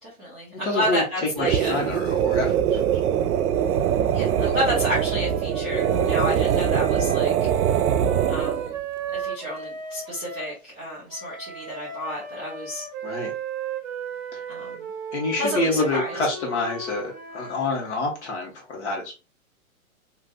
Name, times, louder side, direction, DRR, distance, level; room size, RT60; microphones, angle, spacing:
voice 1, 0.0-1.8 4.1-7.3 8.3-8.7 9.1-12.8 14.5-14.9 15.4-16.2, equal, 5° left, -17 dB, 0.4 m, -30 dB
voice 2, 0.5-1.0 1.4-3.0 13.0-13.3 14.3-14.4 15.1-19.1, left 2 dB, 50° left, -1 dB, 1.6 m, -27 dB
sound 1, 1.4-8.7, right 9 dB, 90° right, 0.5 m, -23 dB
sound 2, 4.5-10.5 11.1-17.8, right 5 dB, 30° right, 0.7 m, -35 dB
3.0 x 2.6 x 2.4 m, 0.30 s
hypercardioid pair, 170°, 43 cm